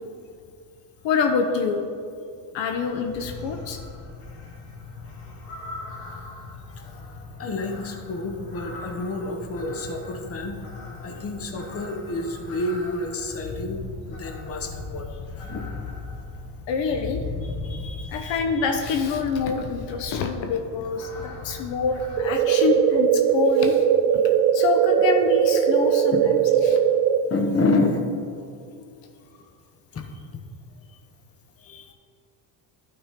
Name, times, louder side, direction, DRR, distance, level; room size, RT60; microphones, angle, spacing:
voice 1, 1.0-1.8 2.5-3.8 16.7-17.2 17.6-23.8 24.5-26.8, left 5 dB, 65° left, 5 dB, 0.8 m, -26 dB
sound 1, 2.8-22.2, left 3 dB, 80° left, 1.7 m, -38 dB
voice 2, 7.4-10.6 11.0-15.1 15.4-15.7 26.1-26.3 27.3-28.0 29.9-30.0 31.6-31.9, left 2 dB, 30° left, 4 dB, 1.0 m, -28 dB
sound 2, 22.2-27.2, right 9 dB, 90° right, 0.6 m, -20 dB
12.0 x 5.4 x 3.6 m, 2.4 s
cardioid pair, 105°, 49 cm